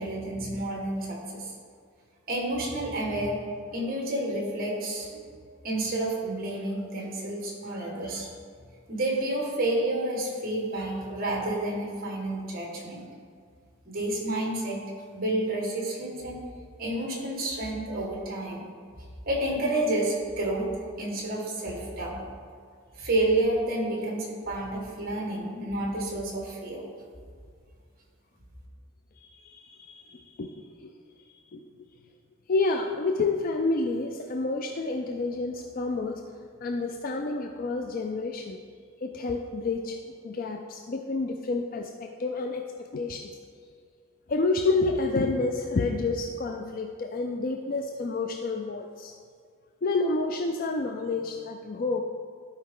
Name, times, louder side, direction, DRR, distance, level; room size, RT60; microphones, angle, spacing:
voice 1, 0.0-1.5 2.3-3.4 3.7-5.2 5.6-8.3 8.9-13.1 13.9-14.8 15.1-16.4 16.8-18.7 19.3-20.7 21.0-22.2 23.0-26.8, right 1 dB, 45° right, -2 dB, 1.8 m, -30 dB
voice 2, 29.2-30.9 31.5-31.7 32.5-36.2 36.6-38.6 39.0-40.0 40.2-42.6 42.9-43.3 44.3-49.1 49.8-52.0, left 3 dB, 40° left, 4 dB, 0.4 m, -29 dB
12.5 x 4.6 x 3.8 m, 2.1 s
head